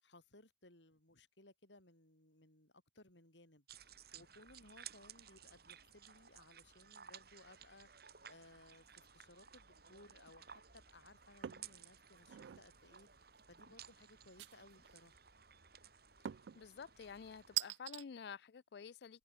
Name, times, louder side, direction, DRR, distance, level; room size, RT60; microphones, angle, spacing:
voice 1, 0.0-7.9 8.3-13.1 13.5-15.2, left 2 dB, 90° left, 7.4 m, -63 dB
sound 1, 3.7-17.6, right 8 dB, 60° right, 6.9 m, -58 dB
sound 2, 11.4-11.7 12.2-12.7 14.4-14.9 16.3-16.6 17.6-18.0, right 13 dB, 85° right, 0.4 m, -42 dB
voice 2, 16.6-19.2, left 6 dB, 65° left, 0.4 m, -50 dB
head